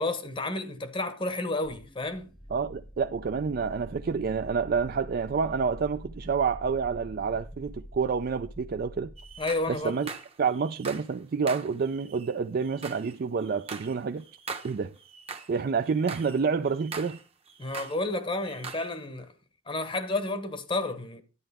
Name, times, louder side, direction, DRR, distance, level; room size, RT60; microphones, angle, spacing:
voice 1, 0.0-2.3 9.4-10.1 17.6-19.3 19.7-21.2, left 2 dB, 25° left, 0.9 m, -31 dB
sound 1, 1.6-9.8, equal, ahead, 0.8 m, -45 dB
voice 2, 2.5-9.1 9.7-10.1 10.4-14.2 14.6-14.9 15.5-17.2, right 5 dB, 50° right, 0.4 m, -28 dB
sound 2, 9.2-11.2 11.5-15.6 15.8-18.0 18.3-18.9, right 5 dB, 30° right, 0.9 m, -42 dB
11.0 x 8.8 x 3.5 m
head